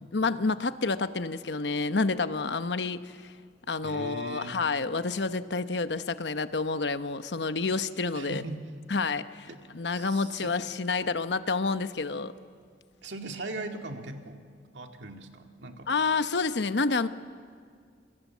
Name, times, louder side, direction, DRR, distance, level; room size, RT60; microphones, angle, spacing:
voice 1, 0.1-3.1 3.7-8.4 8.9-12.3 15.9-17.1, left 4 dB, 75° left, 11 dB, 0.9 m, -29 dB
voice 2, 3.8-4.6 8.1-8.7 9.5-9.6 10.0-10.6 13.0-15.9, right 2 dB, 85° right, 4 dB, 2.2 m, -40 dB
27.0 x 25.5 x 7.4 m, 2.1 s
head